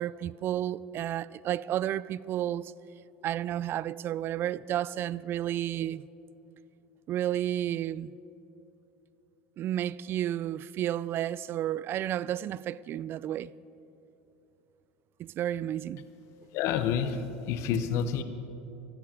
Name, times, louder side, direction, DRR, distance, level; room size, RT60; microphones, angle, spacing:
voice 1, 0.0-2.7 3.2-6.1 7.1-8.1 9.6-13.5 15.2-16.0, right 12 dB, 45° right, 0.3 m, -31 dB
voice 2, 16.5-18.2, left 7 dB, 65° left, 0.9 m, -29 dB
15.5 x 12.0 x 5.1 m
supercardioid pair, 95°, 5 cm